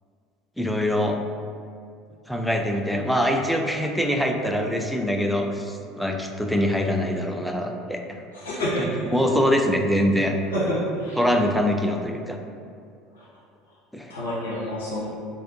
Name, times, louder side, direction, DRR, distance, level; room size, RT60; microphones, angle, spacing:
voice 1, 0.6-1.2 2.3-8.2 8.8-10.3 11.2-12.4 13.9-14.1, equal, ahead, 2 dB, 0.3 m, -24 dB
voice 2, 8.3-9.1 10.5-11.2 13.1-13.2 14.1-15.1, equal, 75° left, -7 dB, 1.0 m, -28 dB
3.2 x 2.6 x 2.9 m, 2.3 s
figure-of-eight pair, 70°, 0 cm